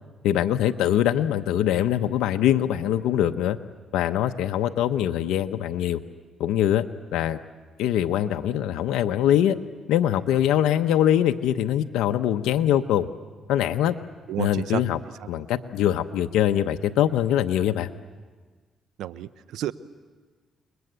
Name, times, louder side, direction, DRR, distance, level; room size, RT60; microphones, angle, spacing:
voice 1, 0.2-3.6 3.9-6.0 6.4-6.8 7.1-7.4 7.8-9.5 9.9-13.1 13.5-14.0 14.4-15.0 15.3-17.9, left 11 dB, 90° left, 7 dB, 0.8 m, -23 dB
voice 2, 14.3-14.8 19.0-19.7, right 12 dB, 85° right, 15 dB, 0.8 m, -30 dB
29.0 x 21.5 x 8.1 m, 1.4 s
cardioid pair, 90°, 0 cm